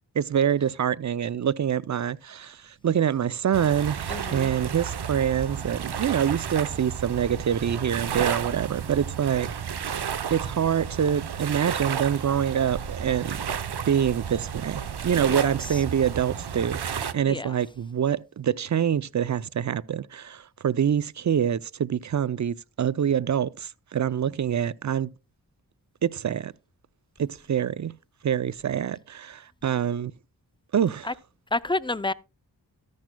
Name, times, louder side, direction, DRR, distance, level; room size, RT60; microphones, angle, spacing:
voice 1, 0.2-9.5 10.3-13.4 13.9-25.1 26.0-26.5 27.2-27.9 28.2-30.1 30.7-31.1, right 8 dB, 45° right, 0.5 m, -26 dB
sound 1, 3.5-17.1, right 7 dB, 70° right, 0.8 m, -32 dB
voice 2, 4.1-4.5 15.3-15.5 17.3-17.5 31.0-31.1 31.5-32.1, left 2 dB, 15° left, 0.4 m, -29 dB
13.5 x 10.5 x 2.2 m
cardioid pair, 45°, 41 cm